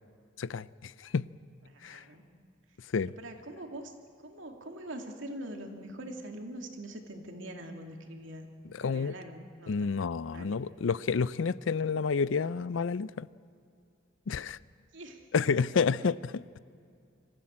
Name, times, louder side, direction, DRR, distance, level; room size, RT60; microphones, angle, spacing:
voice 1, 0.4-1.3 1.8-2.0 2.9-3.1 8.7-9.1 9.7-13.3 14.3-14.6 15.3-16.4, left 5 dB, 80° left, 0.5 m, -29 dB
voice 2, 1.7-2.2 3.2-3.9 4.2-8.5 8.8-9.9 10.3-10.6 14.9-15.3 15.8-15.9, right 1 dB, 80° right, 2.5 m, -43 dB
24.5 x 15.0 x 8.7 m
head